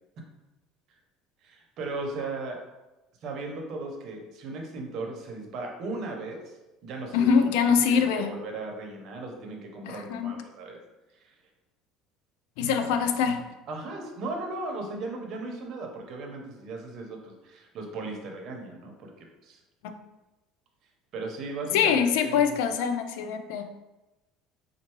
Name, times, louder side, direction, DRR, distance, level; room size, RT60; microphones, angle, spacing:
voice 1, 1.4-2.6 3.2-7.3 7.9-10.8 11.1-11.3 12.6-12.8 13.7-19.6 21.1-22.4, right 3 dB, 55° right, 2 dB, 0.8 m, -37 dB
voice 2, 7.1-8.3 9.9-10.4 12.6-13.5 19.8-19.9 21.7-23.7, left 6 dB, 80° left, 8 dB, 0.4 m, -24 dB
4.4 x 2.5 x 3.0 m, 1.0 s
supercardioid pair, 120°, 0 cm